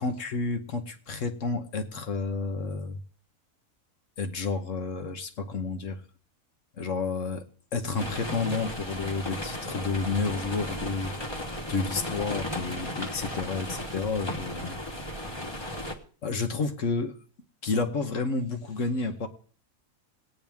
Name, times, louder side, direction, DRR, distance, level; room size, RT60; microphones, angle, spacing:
voice 1, 0.0-3.0 4.2-6.0 6.8-7.4 7.7-11.1 11.7-14.8 16.2-17.2 17.6-19.3, left 4 dB, 65° left, 6 dB, 1.5 m, -30 dB
sound 1, 8.0-15.9, left 1 dB, 20° left, 1.3 m, -35 dB
20.0 x 8.9 x 3.6 m, 0.43 s
omnidirectional pair, 1.5 m